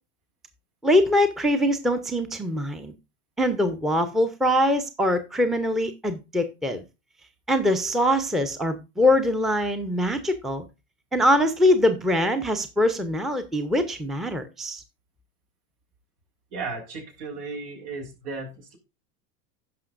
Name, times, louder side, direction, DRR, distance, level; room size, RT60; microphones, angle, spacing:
voice 1, 0.8-2.9 3.4-6.8 7.5-10.6 11.1-14.8, left 1 dB, ahead, 0.7 m, -23 dB
voice 2, 16.5-18.8, right 4 dB, 75° right, 4.7 m, -35 dB
16.0 x 5.5 x 2.5 m
hypercardioid pair, 110°, 46 cm